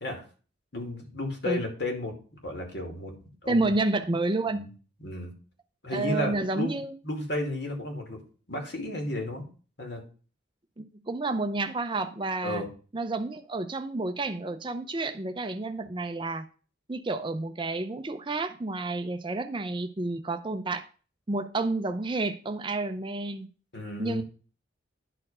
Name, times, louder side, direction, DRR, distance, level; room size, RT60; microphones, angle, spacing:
voice 1, 0.7-2.1 2.4-3.7 4.5-4.7 5.0-5.3 5.8-6.8 7.0-8.2 8.5-9.4 9.8-10.0 12.4-12.7 23.7-24.2, left 1 dB, 55° left, 2 dB, 2.4 m, -33 dB
voice 2, 3.5-4.6 5.9-6.9 10.8-12.6 12.9-16.5 16.9-20.8 21.3-23.5 24.0-24.2, right 2 dB, 25° right, 9 dB, 0.5 m, -30 dB
11.0 x 4.4 x 5.5 m, 0.38 s
head